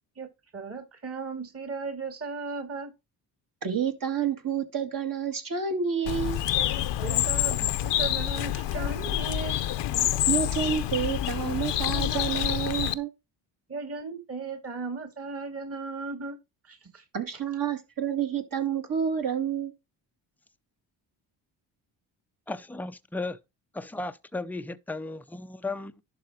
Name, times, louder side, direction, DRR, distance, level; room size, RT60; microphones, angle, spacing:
voice 1, 0.5-2.9 7.0-9.6 13.7-16.4 16.6-17.0, right 4 dB, 30° right, 2.2 m, -36 dB
voice 2, 3.6-6.4 10.3-13.1 17.1-19.7, right 7 dB, 50° right, 2.2 m, -29 dB
Bird, 6.0-12.9, left 13 dB, 70° left, 0.8 m, -27 dB
voice 3, 22.5-23.4 23.7-26.0, left 2 dB, 5° left, 0.6 m, -35 dB
11.5 x 3.8 x 4.8 m
supercardioid pair, 75°, 44 cm